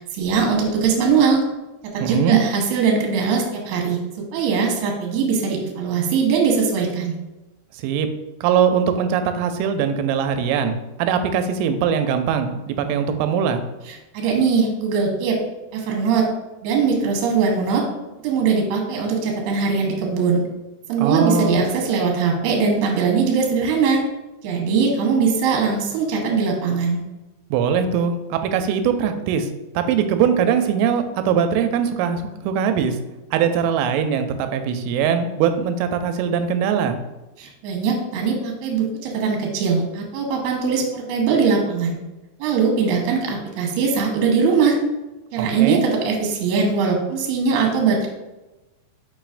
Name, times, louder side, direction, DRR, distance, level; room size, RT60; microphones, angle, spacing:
voice 1, 0.1-1.4 1.9-7.2 13.9-15.4 15.7-16.3 16.6-17.8 18.2-20.4 20.9-24.0 24.4-27.0 37.4-42.0 42.4-44.8 45.3-48.1, right 5 dB, 70° right, 0 dB, 2.7 m, -21 dB
voice 2, 2.0-2.4 7.8-8.1 8.4-10.7 11.0-13.6 21.0-21.6 27.5-29.5 29.8-33.0 33.3-37.0 45.4-45.8, right 7 dB, 90° right, 8 dB, 3.1 m, -21 dB
7.0 x 5.5 x 2.5 m, 1.0 s
omnidirectional pair, 5.5 m